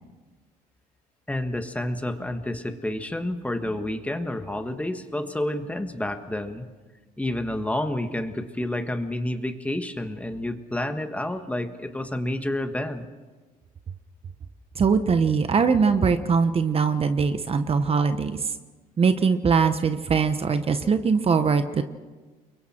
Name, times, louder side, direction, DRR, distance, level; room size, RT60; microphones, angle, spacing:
voice 1, 1.3-6.7 7.2-13.1, left 1 dB, 10° left, 7 dB, 1.5 m, -29 dB
voice 2, 14.8-18.4 19.0-21.8, right 5 dB, 35° right, 9 dB, 1.0 m, -21 dB
29.5 x 23.0 x 4.5 m, 1.3 s
cardioid pair, 110°, 17 cm